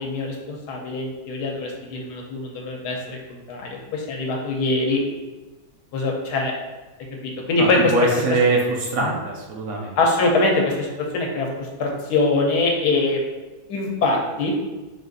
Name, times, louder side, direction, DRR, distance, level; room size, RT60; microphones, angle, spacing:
voice 1, 0.0-5.0 5.9-6.5 7.2-7.9 9.0-9.2 10.0-13.2 13.7-14.5, left 2 dB, 85° left, 0 dB, 1.3 m, -23 dB
voice 2, 7.6-9.9, right 3 dB, 65° right, -1 dB, 1.0 m, -22 dB
4.0 x 2.5 x 3.9 m, 1.2 s
omnidirectional pair, 1.7 m